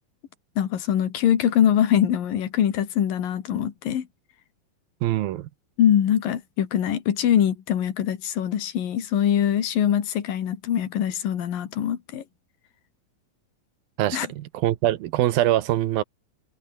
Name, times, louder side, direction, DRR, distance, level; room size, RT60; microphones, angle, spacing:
voice 1, 0.6-4.1 5.8-12.2 14.1-14.3, left 10 dB, 65° left, 3.8 m, -23 dB
voice 2, 5.0-5.5 14.0-16.0, right 14 dB, 75° right, 2.8 m, -23 dB
omnidirectional pair, 4.3 m